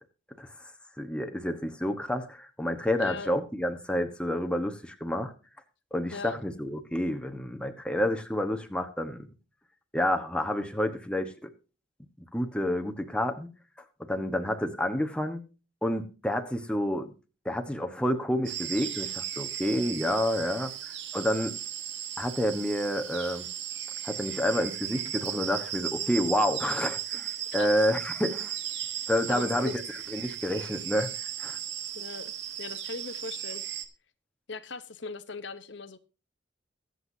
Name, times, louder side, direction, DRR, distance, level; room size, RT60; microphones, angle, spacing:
voice 1, 1.0-5.3 5.9-9.3 9.9-11.5 12.3-13.5 14.1-15.4 15.8-17.1 17.4-21.6 22.2-23.4 24.0-28.6 29.1-31.1 31.4-31.6, left 1 dB, 5° left, 1.1 m, -29 dB
voice 2, 3.0-3.4 6.1-6.4 27.5-27.8 29.3-29.8 31.9-33.6 34.5-36.0, left 4 dB, 65° left, 0.9 m, -39 dB
sound 1, 18.4-33.8, right 10 dB, 65° right, 1.3 m, -36 dB
23.0 x 7.9 x 2.7 m
head